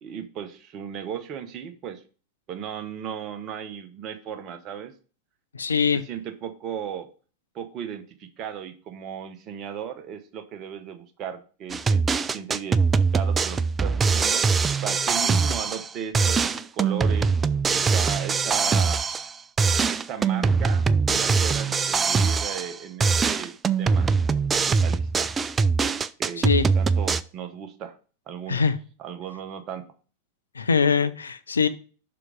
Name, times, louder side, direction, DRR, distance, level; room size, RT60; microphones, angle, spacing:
voice 1, 0.0-2.0 2.5-4.9 6.1-7.1 7.5-12.8 13.1-14.4 14.8-17.3 17.7-19.0 19.9-23.5 23.8-24.1 24.5-25.3 26.2-26.5 26.7-28.0 28.3-28.6 29.0-29.8, right 8 dB, 35° right, 8 dB, 1.0 m, -36 dB
voice 2, 5.5-6.0 26.4-26.7 28.5-28.8 30.5-31.7, left 5 dB, 75° left, 12 dB, 0.5 m, -22 dB
sound 1, 11.7-15.9 16.1-19.3 19.6-22.7 23.0-27.2, right 5 dB, 20° right, 0.3 m, -22 dB
6.0 x 4.9 x 5.1 m, 0.38 s
figure-of-eight pair, 90°, 0 cm